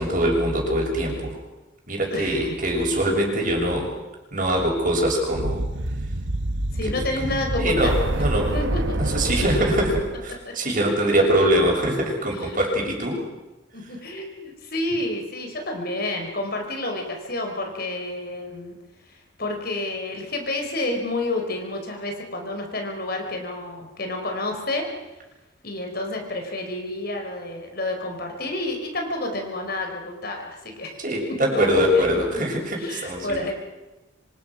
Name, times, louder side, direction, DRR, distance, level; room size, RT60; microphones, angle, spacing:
voice 1, 0.0-1.4 1.9-3.9 4.3-5.6 6.8-6.9 7.2-8.5 8.9-13.2 13.8-13.9 31.0-33.5, equal, 40° right, 0 dB, 7.0 m, -23 dB
sound 1, 5.3-10.3, right 1 dB, 65° right, 1.4 m, -26 dB
voice 2, 6.7-7.9 8.5-8.8 10.5-10.6 11.0-11.4 13.7-18.8 19.1-24.9 25.6-31.0 31.4-32.0 32.8-33.5, left 2 dB, 50° left, 3 dB, 4.9 m, -29 dB
28.0 x 26.0 x 6.3 m, 1.1 s
head